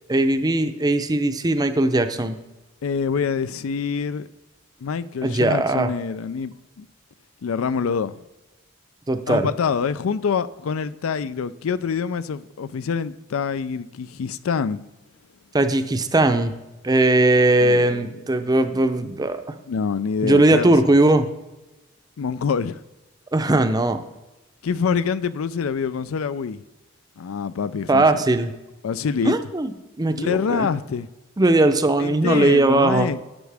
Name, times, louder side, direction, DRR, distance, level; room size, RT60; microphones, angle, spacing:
voice 1, 0.1-2.4 5.2-5.9 9.1-9.5 15.5-16.5 16.8-19.5 20.2-21.3 23.3-24.0 27.9-28.5 29.2-29.7 30.0-30.7 31.4-33.1, right 2 dB, 20° right, 0.5 m, -19 dB
voice 2, 2.8-4.3 4.8-6.9 7.4-8.2 9.3-14.8 17.6-18.2 19.7-20.7 22.2-22.8 24.6-26.6 27.2-28.2 28.8-29.4 30.2-31.1 32.0-33.3, left 6 dB, 90° left, 0.4 m, -26 dB
11.0 x 8.0 x 3.4 m
head